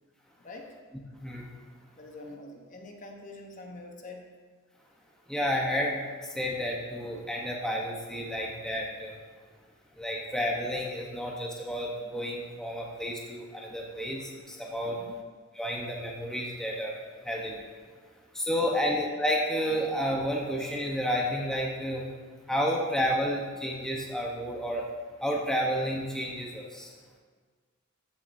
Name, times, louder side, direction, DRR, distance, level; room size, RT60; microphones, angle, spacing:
voice 1, 1.1-1.5 5.3-9.2 10.0-15.0 15.5-17.0 17.2-17.6 18.3-22.1 22.5-24.9 25.2-26.9, equal, 5° left, -2 dB, 0.8 m, -31 dB
voice 2, 1.9-4.3 14.8-15.2 18.7-18.9, left 2 dB, 35° left, 2 dB, 0.9 m, -45 dB
13.5 x 7.3 x 2.6 m, 1.5 s
head